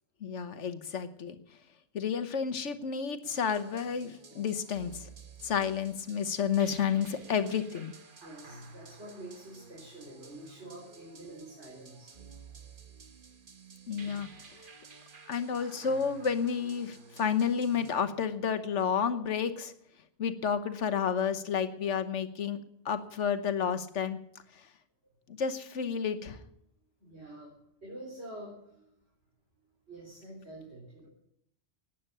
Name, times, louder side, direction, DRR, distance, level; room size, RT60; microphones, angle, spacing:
voice 1, 0.2-1.4 1.9-5.1 5.4-7.9 13.9-14.3 15.3-19.7 20.2-22.6 22.8-24.2 24.5-24.6 25.3-26.4, left 7 dB, 80° left, 11 dB, 1.4 m, -31 dB
sound 1, 3.2-18.0, right 4 dB, 45° right, 1.4 m, -52 dB
voice 2, 8.2-12.1 27.0-27.5 27.8-28.8 29.9-31.1, right 1 dB, 65° right, -3 dB, 4.3 m, -47 dB
12.0 x 9.5 x 9.8 m, 0.75 s
omnidirectional pair, 1.2 m